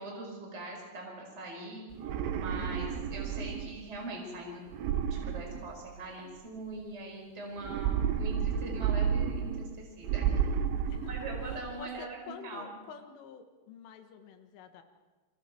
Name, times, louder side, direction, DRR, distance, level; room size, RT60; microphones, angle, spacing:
voice 1, 0.0-1.8 2.3-4.7 5.1-10.4 11.1-12.8, right 2 dB, 15° right, -1 dB, 4.8 m, -42 dB
sound 1, 1.9-3.8 4.7-6.2 7.6-9.7 10.0-11.8, right 8 dB, 85° right, 3.6 m, -31 dB
voice 2, 2.5-3.0 10.9-14.8, left 7 dB, 80° left, 6 dB, 4.0 m, -49 dB
29.5 x 23.0 x 4.5 m, 1.3 s
omnidirectional pair, 5.6 m